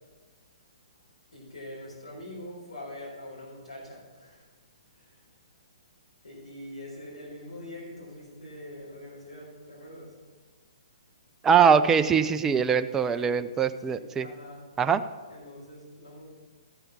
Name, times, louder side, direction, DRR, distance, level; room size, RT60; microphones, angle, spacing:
voice 1, 1.3-4.5 4.9-5.2 6.2-10.2 13.1-13.3 13.9-14.7 15.3-16.3, left 1 dB, 80° left, -4 dB, 3.9 m, -44 dB
voice 2, 11.4-14.3 14.8-15.0, right 6 dB, 15° right, 10 dB, 0.4 m, -22 dB
13.5 x 5.6 x 6.0 m, 1.4 s
figure-of-eight pair, 130°, 4 cm